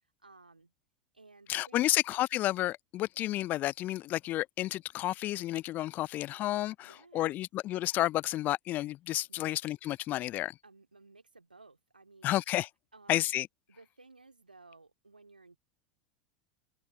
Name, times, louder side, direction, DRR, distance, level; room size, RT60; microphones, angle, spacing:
voice 1, 0.2-0.7 1.1-2.0 6.8-7.3 9.3-9.5 10.6-12.3 12.9-13.4 13.7-15.6, right 3 dB, 85° right, 3.0 m, -57 dB
voice 2, 1.5-10.5 12.2-12.7 13.1-13.5, left 15 dB, 35° left, 0.6 m, -31 dB
figure-of-eight pair, 85°, 5 cm